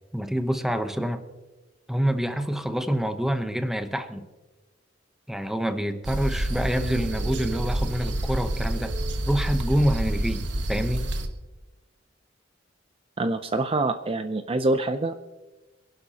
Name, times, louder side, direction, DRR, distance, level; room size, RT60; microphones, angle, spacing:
voice 1, 0.1-1.2 1.9-4.2 5.3-9.0 9.3-11.1, equal, ahead, 8 dB, 0.8 m, -27 dB
sound 1, 6.0-11.3, right 1 dB, 70° right, 1.2 m, -28 dB
voice 2, 13.2-15.1, right 2 dB, 30° right, 8 dB, 0.5 m, -25 dB
25.5 x 11.5 x 2.9 m, 1.1 s
head